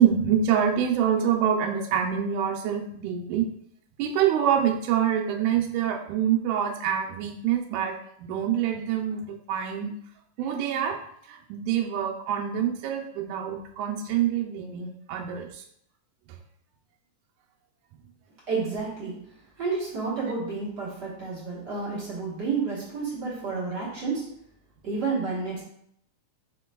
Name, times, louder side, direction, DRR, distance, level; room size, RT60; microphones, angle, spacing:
voice 1, 0.0-3.5 4.0-10.0 10.4-15.6 16.3-16.4, right 9 dB, 85° right, 1 dB, 1.9 m, -26 dB
voice 2, 18.5-19.2 19.6-24.3 24.8-25.6, right 4 dB, 50° right, -8 dB, 1.3 m, -30 dB
5.0 x 3.8 x 2.2 m, 0.70 s
omnidirectional pair, 3.4 m